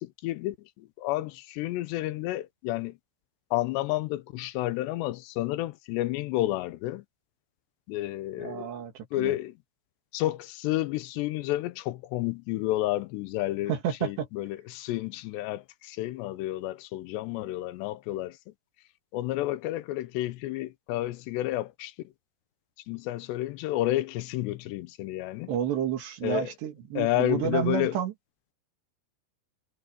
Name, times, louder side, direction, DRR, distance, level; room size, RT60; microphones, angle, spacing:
voice 1, 0.0-3.0 3.5-7.1 7.9-8.7 9.1-9.6 10.1-13.7 14.0-18.4 19.1-22.1 22.9-25.5 26.2-26.5 27.0-28.0, left 16 dB, 90° left, 3.0 m, -30 dB
voice 2, 8.4-9.4 13.7-14.3 25.5-28.1, right 9 dB, 85° right, 4.6 m, -30 dB
omnidirectional pair, 4.8 m